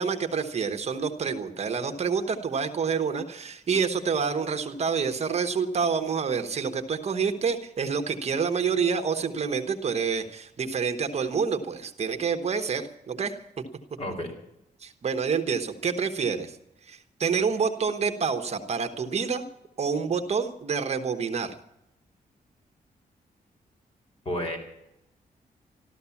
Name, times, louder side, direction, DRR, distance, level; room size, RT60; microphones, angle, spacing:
voice 1, 0.0-13.4 14.8-16.6 16.8-19.4 19.8-21.6, right 6 dB, 45° right, 7 dB, 1.2 m, -28 dB
voice 2, 14.0-14.3 24.2-24.6, left 1 dB, 40° left, 3 dB, 4.3 m, -31 dB
14.0 x 13.0 x 7.1 m, 0.83 s
wide cardioid pair, 160°, 15 cm